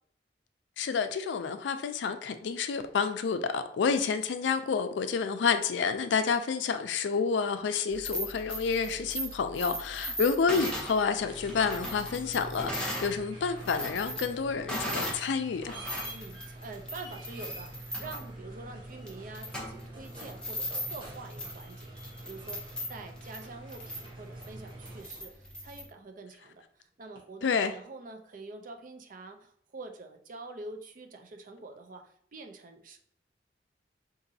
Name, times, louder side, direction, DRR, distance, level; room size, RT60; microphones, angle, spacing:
voice 1, 0.8-15.8 27.4-27.7, left 5 dB, 80° left, 0.4 m, -29 dB
sound 1, 7.9-13.1 13.5-15.3 15.6-25.9, equal, 5° left, 0.7 m, -38 dB
sound 2, 11.2-25.4 27.2-27.3, right 1 dB, 25° right, 0.9 m, -46 dB
voice 2, 16.1-33.0, right 3 dB, 45° right, 0.4 m, -46 dB
3.9 x 2.5 x 2.7 m
head